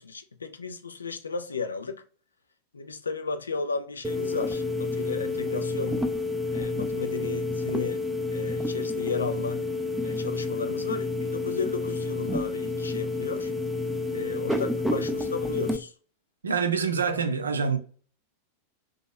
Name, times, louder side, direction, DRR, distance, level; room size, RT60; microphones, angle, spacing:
voice 1, 0.0-2.0 2.7-6.0 6.5-8.0 8.3-9.6 10.0-13.5 14.1-15.9, left 4 dB, 75° left, 0.4 m, -34 dB
sound 1, 4.0-15.8, left 2 dB, 5° right, 0.4 m, -29 dB
voice 2, 16.4-17.8, right 5 dB, 75° right, 0.5 m, -26 dB
2.9 x 2.3 x 3.4 m
figure-of-eight pair, 90°, 0 cm